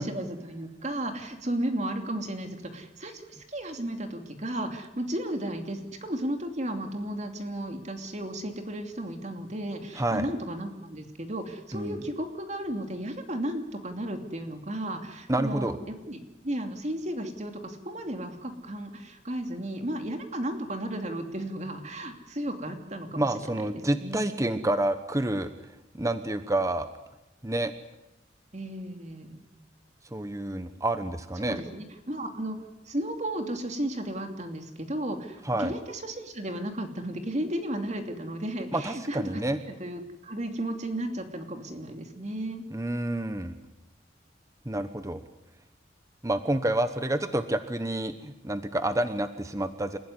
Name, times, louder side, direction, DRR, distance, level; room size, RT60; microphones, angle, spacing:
voice 1, 0.0-24.6 28.5-29.4 31.4-32.6 32.9-42.6, right 1 dB, 40° right, 5 dB, 2.8 m, -34 dB
voice 2, 9.9-10.3 11.7-12.0 15.3-15.8 23.2-25.5 25.9-26.9 27.4-27.7 30.1-31.6 35.4-35.7 38.7-39.6 42.7-43.6 44.6-45.2 46.2-50.0, right 1 dB, 15° right, 10 dB, 1.0 m, -28 dB
28.5 x 15.5 x 9.7 m, 0.97 s
head